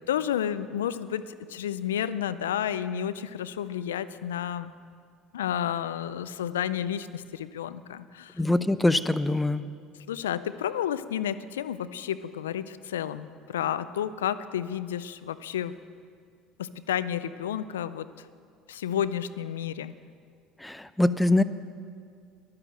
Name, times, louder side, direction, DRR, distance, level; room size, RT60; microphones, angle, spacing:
voice 1, 0.1-4.7 5.3-8.4 10.1-15.7 16.6-18.3 18.7-19.9, left 10 dB, 85° left, 15 dB, 0.4 m, -31 dB
voice 2, 8.4-9.7 20.6-21.4, left 2 dB, 10° left, 13 dB, 0.6 m, -23 dB
12.0 x 10.5 x 7.5 m, 2.2 s
hypercardioid pair, 70°, 0 cm